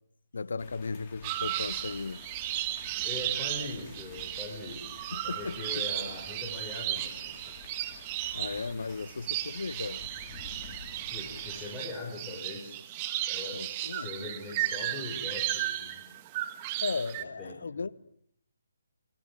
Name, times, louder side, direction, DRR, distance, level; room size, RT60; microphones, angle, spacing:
voice 1, 0.3-2.6 5.1-5.8 8.3-10.1 13.5-14.1 16.8-17.9, left 4 dB, 60° left, 1.3 m, -36 dB
sound 1, 0.6-11.7, left 4 dB, 25° left, 4.2 m, -50 dB
sound 2, 1.2-17.2, right 14 dB, 25° right, 1.9 m, -35 dB
voice 2, 2.9-4.8 5.2-7.4 11.1-12.8 13.3-16.0 17.2-17.9, left 2 dB, 10° left, 5.5 m, -41 dB
29.0 x 20.5 x 9.0 m
figure-of-eight pair, 145°, 0 cm